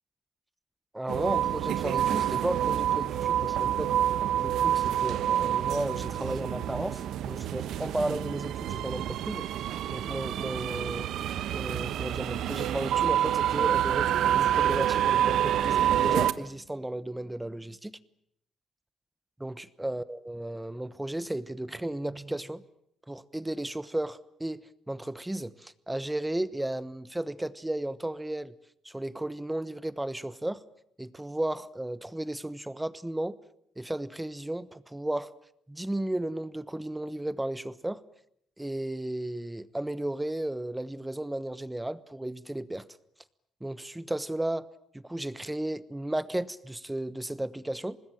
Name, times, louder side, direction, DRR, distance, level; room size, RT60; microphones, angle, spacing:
voice 1, 0.9-4.0 4.4-9.5 9.9-11.1 11.5-17.9 19.4-22.6 23.1-28.5 28.8-30.6 31.0-33.4 33.8-35.3 35.7-38.0 38.6-42.9 43.6-44.7 44.9-48.0, right 1 dB, 10° right, 1.0 m, -34 dB
sound 1, 1.1-16.3, right 11 dB, 75° right, 1.1 m, -27 dB
25.0 x 20.5 x 8.9 m
cardioid pair, 110°, 0 cm